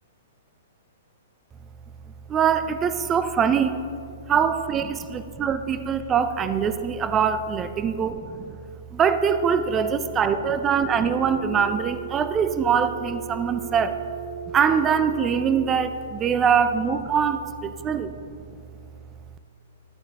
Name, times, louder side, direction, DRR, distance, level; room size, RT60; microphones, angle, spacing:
voice 1, 2.3-3.8 4.3-8.6 8.9-13.9 14.5-18.1, right 7 dB, 15° right, 11 dB, 0.3 m, -23 dB
Telephone, 10.8-15.8, right 8 dB, 75° right, 1.9 m, -37 dB
13.0 x 8.5 x 3.6 m, 2.4 s
hypercardioid pair, 175°, 0 cm